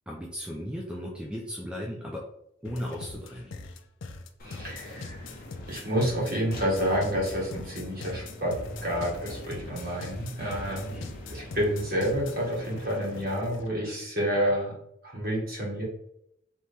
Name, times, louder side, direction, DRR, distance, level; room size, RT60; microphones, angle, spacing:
voice 1, 0.1-2.3 2.6-3.6 10.9-11.1, equal, 5° right, -2 dB, 0.4 m, -36 dB
sound 1, 2.6-13.8, left 3 dB, 65° left, 0.5 m, -41 dB
sound 2, 4.4-13.2, equal, 45° left, 1.1 m, -45 dB
voice 2, 4.5-5.3 5.7-8.5 8.8-10.9 11.3-14.7 15.0-15.8, equal, 45° right, -4 dB, 1.6 m, -29 dB
4.4 x 3.0 x 3.4 m, 0.75 s
head